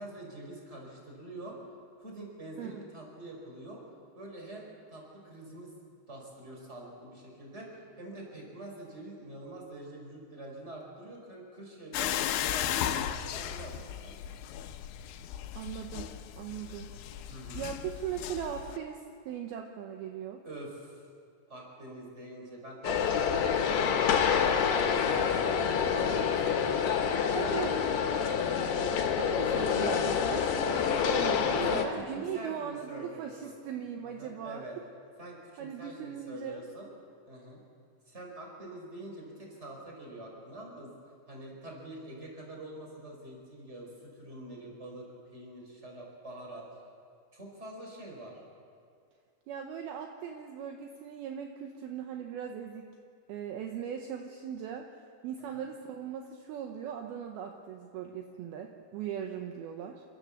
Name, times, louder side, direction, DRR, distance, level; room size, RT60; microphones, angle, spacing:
voice 1, 0.0-1.6 2.0-3.8 4.1-5.7 6.1-14.1 17.3-17.7 20.4-21.1 21.5-24.5 25.0-28.5 31.4-33.6 34.0-34.8 35.2-36.9 37.3-37.6 38.1-40.9 41.3-45.1 45.3-46.8 47.3-48.4 55.5-55.6, right 1 dB, 15° right, -1 dB, 4.6 m, -45 dB
sound 1, 11.9-18.8, left 10 dB, 90° left, 3.2 m, -36 dB
voice 2, 15.6-16.9 17.5-20.4 27.4-27.8 29.2-34.6 35.6-36.6 49.5-52.9 53.3-54.9 55.2-60.0, right 8 dB, 75° right, 3 dB, 2.6 m, -39 dB
sound 2, 22.8-31.9, left 7 dB, 70° left, 3.4 m, -27 dB
28.5 x 13.0 x 7.2 m, 2.3 s
omnidirectional pair, 5.1 m